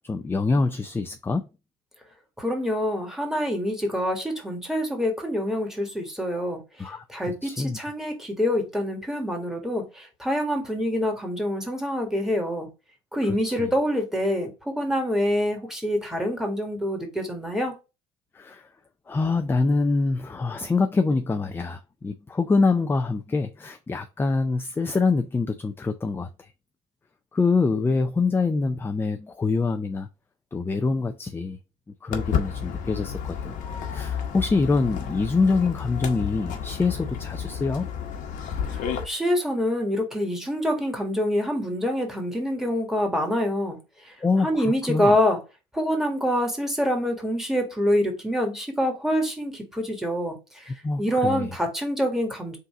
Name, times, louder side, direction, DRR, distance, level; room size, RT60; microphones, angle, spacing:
voice 1, 0.0-1.4 6.8-7.8 13.2-13.7 18.3-18.7 19.1-26.5 27.3-30.1 30.5-31.6 32.0-33.5 33.9-37.9 44.2-45.1 50.8-51.5, left 3 dB, 15° left, 0.4 m, -25 dB
voice 2, 2.4-12.7 13.1-17.7 38.7-43.8 44.0-44.1 44.4-45.4 45.7-50.7 51.0-52.6, equal, 5° right, 1.6 m, -26 dB
Walk footsteps, 32.1-39.0, left 7 dB, 55° left, 1.1 m, -31 dB
3.9 x 2.7 x 4.7 m
hypercardioid pair, 75°, 16 cm